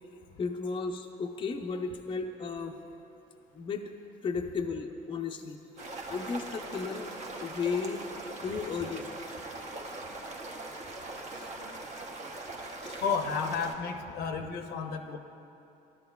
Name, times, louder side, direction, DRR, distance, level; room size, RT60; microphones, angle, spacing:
voice 1, 0.4-2.7 3.5-3.9 4.2-5.6 6.1-7.1 7.4-8.1 8.4-9.1 10.2-10.3 11.3-11.5 11.9-12.0 12.8-13.0, left 5 dB, 30° left, 3 dB, 0.5 m, -34 dB
sound 1, 5.8-13.7, right 2 dB, 45° right, 0.9 m, -41 dB
voice 2, 13.0-15.2, left 5 dB, 75° left, 5 dB, 0.7 m, -32 dB
13.0 x 11.0 x 2.3 m, 2.8 s
cardioid pair, 110°, 17 cm